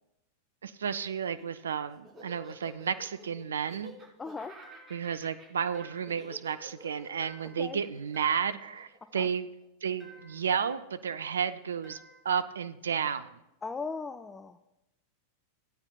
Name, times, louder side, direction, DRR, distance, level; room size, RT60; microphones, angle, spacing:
voice 1, 0.6-3.9 4.9-9.5 9.8-12.0 12.2-13.3, right 7 dB, 70° right, 13 dB, 0.4 m, -32 dB
Laughter, 1.2-9.6, right 1 dB, 20° right, 3.2 m, -51 dB
voice 2, 4.2-4.5 7.6-7.8 9.1-9.3 13.6-14.6, left 4 dB, 15° left, 11 dB, 0.4 m, -37 dB
sound 1, 4.6-5.2 5.7-6.3 7.2-7.8 8.1-8.7 10.0-10.5 11.8-12.4, right 3 dB, 5° right, 2.9 m, -54 dB
16.5 x 8.7 x 2.3 m, 0.90 s
figure-of-eight pair, 90°, 0 cm